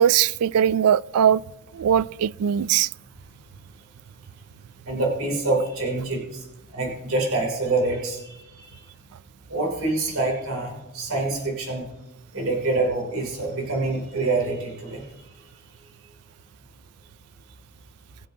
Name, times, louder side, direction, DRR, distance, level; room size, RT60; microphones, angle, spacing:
voice 1, 0.0-1.4 1.7-2.9, right 9 dB, 90° right, 0.3 m, -20 dB
voice 2, 4.8-6.4 6.7-8.8 9.5-11.9 12.3-15.0, right 2 dB, 65° right, 3.1 m, -26 dB
22.0 x 7.9 x 2.8 m
head